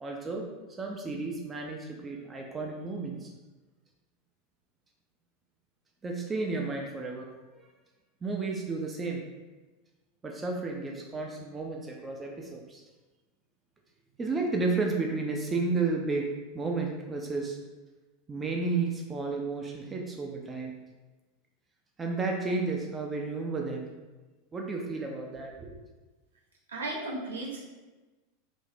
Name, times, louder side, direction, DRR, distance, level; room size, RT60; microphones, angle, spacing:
voice 1, 0.0-0.5 0.8-3.3 6.0-7.3 8.2-9.2 10.2-12.8 14.2-16.3 16.5-17.6 18.3-20.7 22.0-23.8 24.5-25.7, right 3 dB, 20° right, 1 dB, 0.3 m, -32 dB
voice 2, 26.7-27.6, right 2 dB, 75° right, -5 dB, 0.7 m, -35 dB
3.2 x 2.0 x 2.5 m, 1.2 s
figure-of-eight pair, 85°, 0 cm